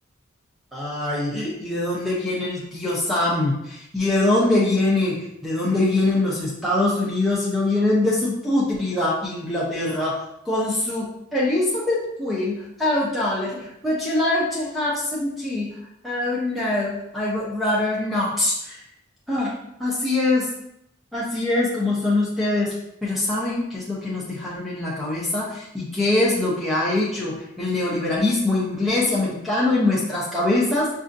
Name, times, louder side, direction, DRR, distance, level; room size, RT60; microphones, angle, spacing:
voice 1, 0.7-15.7 16.0-18.8 19.3-19.5 19.8-20.5 21.1-22.7 23.0-30.9, left 2 dB, ahead, -7 dB, 0.6 m, -23 dB
5.4 x 2.4 x 2.6 m, 0.79 s
head